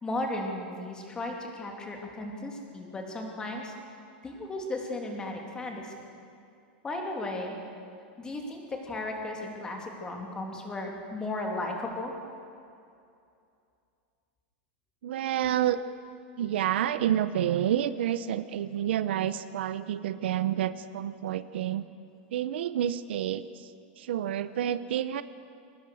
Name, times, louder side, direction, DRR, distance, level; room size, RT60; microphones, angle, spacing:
voice 1, 0.0-3.7 4.2-6.1 6.8-7.6 8.2-12.1, left 2 dB, 15° left, 1 dB, 3.0 m, -35 dB
voice 2, 15.0-15.8 16.4-21.9 22.3-23.7 24.0-25.2, right 11 dB, 80° right, 14 dB, 0.8 m, -29 dB
24.0 x 19.0 x 6.5 m, 2.5 s
supercardioid pair, 155°, 6 cm